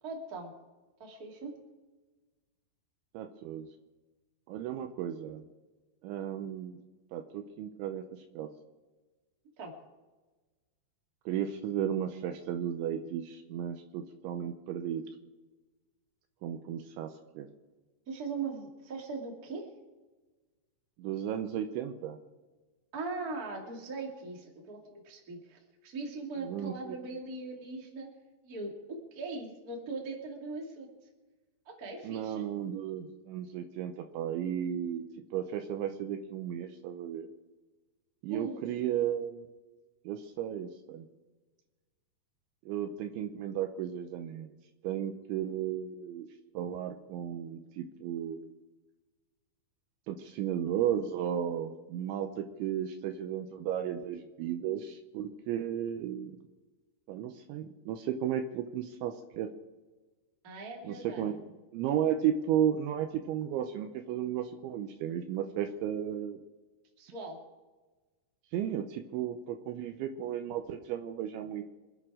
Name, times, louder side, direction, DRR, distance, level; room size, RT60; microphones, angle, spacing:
voice 1, 0.0-0.5 1.0-1.5 9.6-9.7 18.1-19.7 22.9-28.1 28.4-30.9 31.6-32.4 38.3-38.6 60.4-61.3 67.0-67.4, right 3 dB, 30° right, 0 dB, 1.7 m, -40 dB
voice 2, 3.1-3.7 4.5-5.4 6.0-6.8 7.1-8.5 11.3-15.0 16.4-17.5 21.0-22.2 26.4-27.0 32.0-35.1 35.3-37.3 38.2-39.5 40.1-41.1 42.7-44.5 44.8-46.3 46.5-48.5 50.1-56.4 57.1-59.5 60.8-61.3 61.7-66.4 68.5-71.6, right 9 dB, 80° right, 6 dB, 2.9 m, -34 dB
26.5 x 9.0 x 4.9 m, 1.2 s
omnidirectional pair, 5.8 m